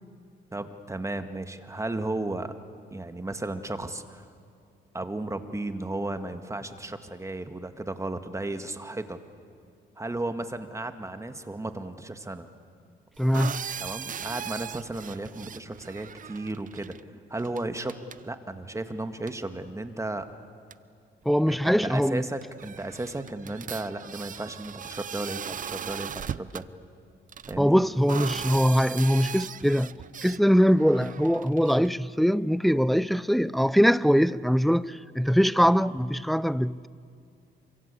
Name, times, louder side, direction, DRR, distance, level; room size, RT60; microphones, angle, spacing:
voice 1, 0.5-2.5 2.9-4.3 4.9-9.2 10.0-12.5 13.8-17.0 17.3-17.9 18.2-20.3 21.5-26.6 27.5-27.8, right 2 dB, 15° right, 2.0 m, -34 dB
voice 2, 13.2-13.7 21.3-22.2 27.6-36.9, equal, ahead, 0.6 m, -22 dB
sound 1, 13.2-17.0 17.4-17.6 17.9-18.2 19.3-19.4 20.3-20.4 20.7-20.8 22.1-22.2 22.4-26.7 27.3-30.4 30.8-31.9, right 8 dB, 40° right, 0.7 m, -38 dB
28.0 x 24.5 x 8.5 m
cardioid pair, 90°, 20 cm